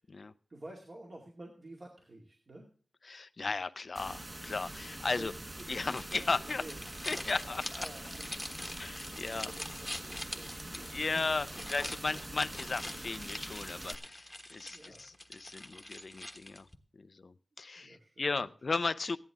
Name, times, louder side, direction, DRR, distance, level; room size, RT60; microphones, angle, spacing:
voice 1, 0.5-2.7 5.2-5.4 6.1-6.2 6.6-6.8 7.1-7.4 7.8-11.2 12.1-12.2 14.6-15.0 17.8-18.3, right 1 dB, 50° right, -1 dB, 2.3 m, -50 dB
voice 2, 3.1-5.3 5.7-6.6 7.1-7.6 8.8-9.5 10.9-16.7 16.9-19.2, left 3 dB, 55° left, 13 dB, 0.5 m, -35 dB
sound 1, 4.0-14.0, right 1 dB, 25° right, 1.1 m, -45 dB
sound 2, 5.6-16.8, left 1 dB, 10° left, 1.2 m, -44 dB
15.0 x 11.0 x 3.6 m, 0.39 s
wide cardioid pair, 80°, 0 cm